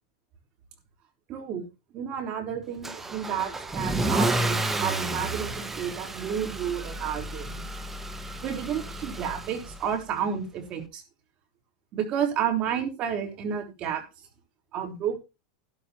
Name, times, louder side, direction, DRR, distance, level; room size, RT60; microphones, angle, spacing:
voice 1, 1.3-1.6 1.9-7.6 8.4-11.0 11.9-14.0 14.7-15.2, right 8 dB, 35° right, 3 dB, 3.7 m, -31 dB
Car / Engine starting / Accelerating revving vroom, 2.8-9.9, right 2 dB, 10° right, 1.4 m, -31 dB
14.0 x 12.5 x 2.9 m, 0.27 s
supercardioid pair, 150°, 3 cm